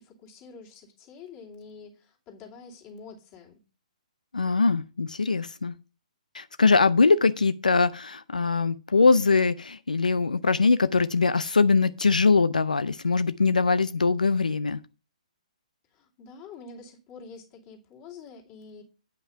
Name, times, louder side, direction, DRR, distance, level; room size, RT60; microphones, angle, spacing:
voice 1, 0.0-3.6 15.9-18.8, left 5 dB, 30° left, 2.6 m, -47 dB
voice 2, 4.3-5.7 6.3-14.8, left 4 dB, 85° left, 0.4 m, -22 dB
9.0 x 5.5 x 5.6 m
figure-of-eight pair, 130°, 4 cm